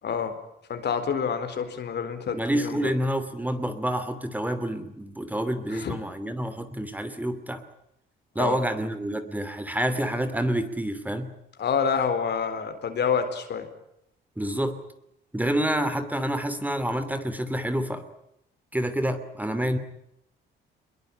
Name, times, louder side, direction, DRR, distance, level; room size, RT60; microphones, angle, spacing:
voice 1, 0.0-0.4 0.7-2.9 5.7-6.0 8.4-8.6 11.6-13.7, left 6 dB, 60° left, 8 dB, 4.3 m, -28 dB
voice 2, 2.3-7.6 8.3-11.3 14.4-14.8 15.3-18.0 18.7-19.8, right 1 dB, 10° right, 10 dB, 2.8 m, -28 dB
24.0 x 22.0 x 8.9 m, 0.79 s
cardioid pair, 90°, 20 cm